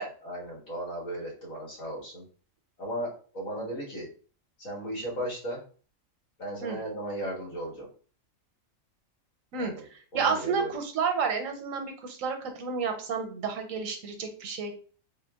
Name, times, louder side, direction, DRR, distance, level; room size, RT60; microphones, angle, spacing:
voice 1, 0.2-2.2 2.8-4.1 4.6-5.6 6.4-7.9 9.5-9.8 10.1-10.7, right 1 dB, 85° left, -3 dB, 2.0 m, -36 dB
voice 2, 10.1-14.7, right 5 dB, 80° right, 5 dB, 1.1 m, -30 dB
3.6 x 2.2 x 3.4 m, 0.40 s
omnidirectional pair, 1.4 m